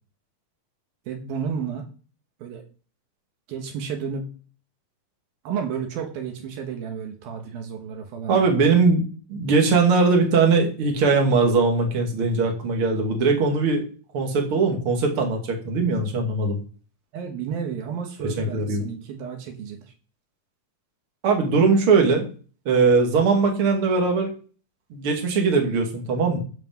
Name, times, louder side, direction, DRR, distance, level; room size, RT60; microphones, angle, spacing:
voice 1, 1.1-1.8 2.4-2.6 3.5-4.3 5.4-8.5 17.1-19.9, right 7 dB, 75° right, 4 dB, 3.2 m, -32 dB
voice 2, 8.3-9.0 9.3-13.8 14.1-16.6 18.2-18.8 21.2-22.3 22.7-24.3 24.9-26.4, right 4 dB, 40° right, 2 dB, 2.9 m, -20 dB
14.0 x 6.0 x 5.4 m, 0.40 s
omnidirectional pair, 4.3 m